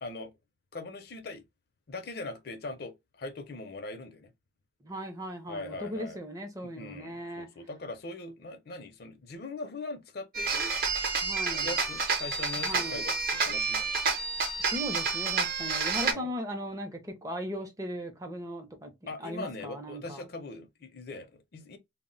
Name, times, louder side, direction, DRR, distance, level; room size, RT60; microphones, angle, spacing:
voice 1, 0.0-0.3 0.7-1.4 1.9-4.3 5.5-6.2 6.6-10.7 11.5-14.2 16.0-16.3 19.1-21.8, left 2 dB, 55° left, 0.5 m, -41 dB
voice 2, 4.8-7.5 11.2-11.7 12.6-13.0 14.6-18.9 19.2-20.2, equal, 15° right, 0.5 m, -38 dB
sound 1, 10.3-16.1, right 4 dB, 50° right, 0.7 m, -29 dB
2.0 x 2.0 x 3.7 m
head